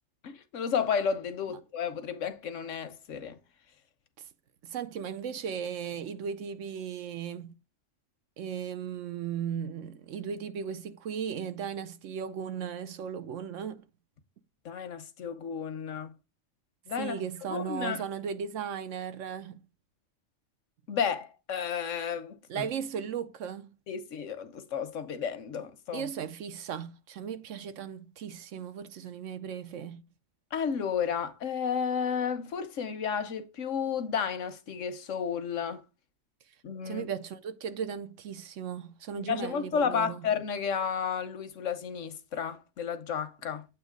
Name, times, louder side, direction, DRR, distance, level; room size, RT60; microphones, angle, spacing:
voice 1, 0.2-3.4 14.6-16.1 16.9-17.1 17.5-18.0 20.9-22.7 23.9-26.1 30.5-35.8 36.6-37.1 39.2-43.7, left 7 dB, 80° left, 1.3 m, -32 dB
voice 2, 4.6-7.5 8.4-13.8 17.0-19.6 22.5-23.7 25.9-30.0 36.9-40.2, right 7 dB, 80° right, 1.1 m, -36 dB
8.2 x 3.0 x 5.0 m
omnidirectional pair, 1.3 m